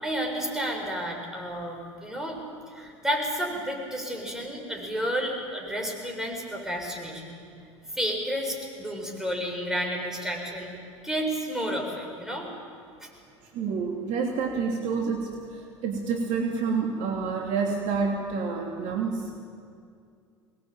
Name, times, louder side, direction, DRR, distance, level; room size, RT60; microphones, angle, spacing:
voice 1, 0.0-2.4 2.7-7.4 7.9-12.5 13.0-13.1, equal, 5° right, 0 dB, 7.0 m, -31 dB
voice 2, 13.5-19.3, right 5 dB, 50° right, 1 dB, 3.0 m, -28 dB
24.5 x 20.0 x 9.0 m, 2.3 s
figure-of-eight pair, 75°, 16 cm